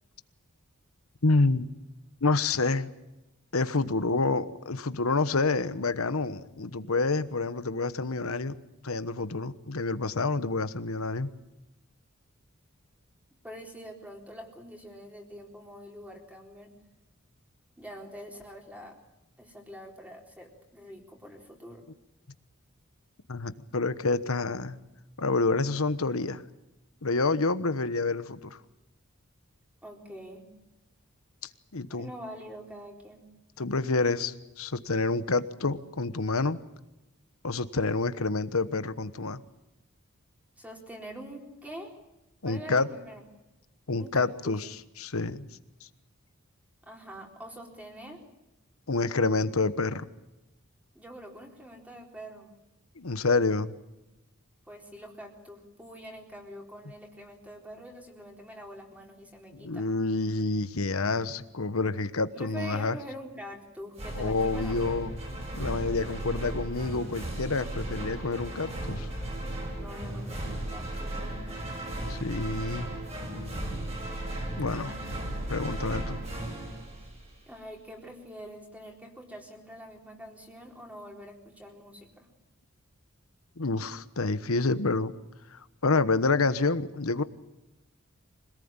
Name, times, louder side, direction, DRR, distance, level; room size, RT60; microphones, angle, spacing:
voice 1, 1.2-1.7 2.2-2.9 3.5-8.6 8.8-11.3 23.3-24.8 25.2-26.4 27.0-28.6 31.7-32.1 33.6-36.6 37.4-39.4 42.4-42.9 43.9-45.5 48.9-50.1 53.0-53.7 59.6-63.0 64.2-65.1 65.6-69.1 72.1-72.9 74.6-74.9 75.5-76.2 83.6-85.2 85.5-87.2, left 3 dB, 80° left, 13 dB, 1.2 m, -28 dB
voice 2, 13.4-16.8 17.8-19.0 19.4-21.8 29.8-30.5 31.9-33.3 40.6-42.0 42.4-43.2 44.0-44.5 46.8-48.2 50.9-52.5 54.7-59.9 62.3-64.8 69.7-71.7 74.5-75.0 77.5-82.3, equal, 5° right, 1 dB, 4.0 m, -45 dB
sound 1, 64.0-77.6, right 1 dB, 30° right, 7.0 m, -36 dB
25.5 x 18.5 x 8.9 m, 0.98 s
head